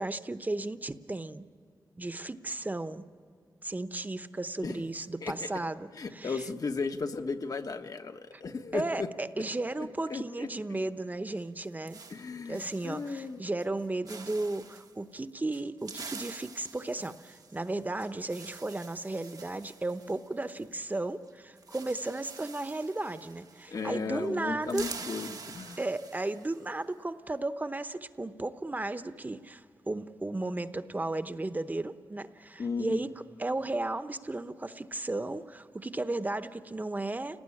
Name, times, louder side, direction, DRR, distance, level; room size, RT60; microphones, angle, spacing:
voice 1, 0.0-1.4 2.0-3.0 3.6-6.4 8.3-8.4 8.7-12.0 12.5-24.9 25.8-37.4, right 2 dB, 25° right, 11 dB, 0.9 m, -34 dB
voice 2, 5.9-9.1 9.8-10.5 12.1-13.4 23.7-25.8 32.6-33.0, left 4 dB, 65° left, 7 dB, 1.3 m, -35 dB
sound 1, 11.4-13.3 13.6-13.8 14.1-14.9 15.5-21.0 21.2-21.3 21.6-24.0 24.2-26.6, right 4 dB, 65° right, 1.1 m, -47 dB
29.5 x 19.0 x 9.8 m, 2.3 s
wide cardioid pair, 80°, 7 cm